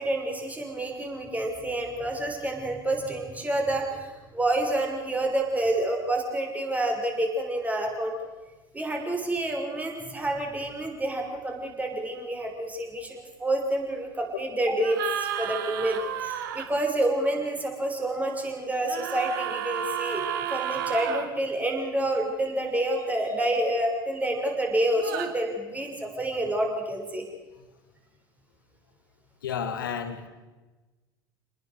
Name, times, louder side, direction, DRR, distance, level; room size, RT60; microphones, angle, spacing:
voice 1, 0.0-8.1 8.7-27.2, right 1 dB, 15° right, 2 dB, 6.2 m, -28 dB
sound 1, 14.8-16.7 18.8-21.3 24.9-25.3, right 10 dB, 65° right, 1.8 m, -32 dB
voice 2, 29.4-30.3, left 7 dB, 70° left, 9 dB, 2.4 m, -31 dB
28.5 x 20.5 x 6.6 m, 1.2 s
figure-of-eight pair, 65°, 12 cm